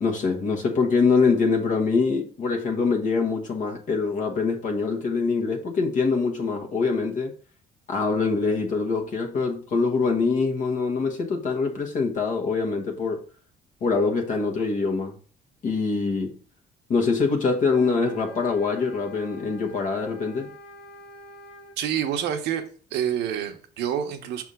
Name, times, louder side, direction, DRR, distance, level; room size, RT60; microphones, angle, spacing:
voice 1, 0.0-7.3 7.9-13.2 13.8-15.2 15.6-16.4 16.9-20.5, left 4 dB, 50° left, 1.2 m, -24 dB
sound 1, 17.6-21.8, equal, 70° left, 1.4 m, -45 dB
voice 2, 21.8-22.6 22.9-24.4, right 9 dB, 85° right, 1.1 m, -27 dB
5.5 x 3.6 x 4.9 m
cardioid pair, 110°, 17 cm